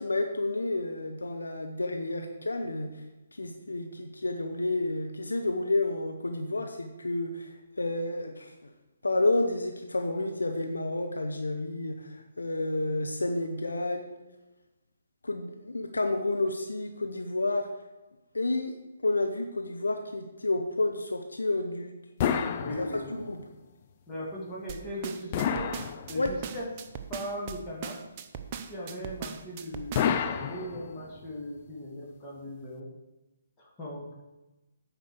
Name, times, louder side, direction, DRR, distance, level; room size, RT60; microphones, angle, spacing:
voice 1, 0.0-3.0 3.4-8.7 9.0-14.1 15.2-17.7 18.3-18.8 19.0-22.0 22.4-23.4 26.1-26.3, left 2 dB, 80° left, 4 dB, 1.0 m, -30 dB
sound 1, 22.2-23.4 25.3-26.6 29.9-31.2, left 8 dB, 35° left, 0.6 m, -30 dB
voice 2, 22.6-23.2 24.1-25.7 26.1-26.7 27.1-28.0 28.7-32.9 33.6-34.2, equal, 15° left, -5 dB, 2.7 m, -38 dB
sound 2, 24.7-30.3, right 7 dB, 30° right, 0.8 m, -39 dB
9.1 x 5.1 x 6.6 m, 1.0 s
figure-of-eight pair, 140°, 0 cm